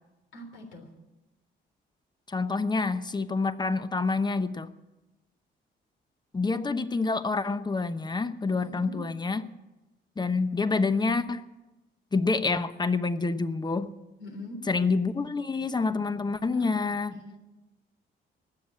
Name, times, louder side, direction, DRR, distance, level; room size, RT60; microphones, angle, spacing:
voice 1, 0.3-0.9 8.5-9.0 14.2-14.6 16.5-16.8 17.1-17.4, left 1 dB, 80° left, 4 dB, 3.6 m, -43 dB
voice 2, 2.3-4.7 6.3-9.5 10.2-11.5 12.1-13.9 14.7-17.2, left 4 dB, 20° left, 12 dB, 0.9 m, -27 dB
19.0 x 7.6 x 8.6 m, 1.0 s
cardioid pair, 90°, 20 cm